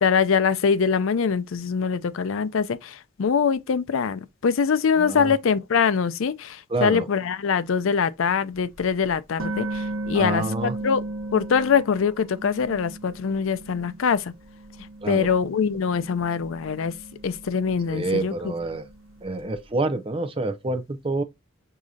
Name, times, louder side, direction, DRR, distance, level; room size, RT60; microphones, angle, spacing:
voice 1, 0.0-11.0 11.3-14.3 15.1-17.0 17.2-18.5, left 6 dB, 75° left, 0.4 m, -23 dB
voice 2, 5.0-5.3 6.7-7.1 10.1-10.7 15.0-15.3 17.9-18.9 19.2-21.2, right 2 dB, 25° right, 0.5 m, -27 dB
sound 1, 8.8-8.9 9.4-14.1 14.4-19.2, right 2 dB, 85° right, 1.1 m, -36 dB
6.2 x 2.8 x 2.3 m
head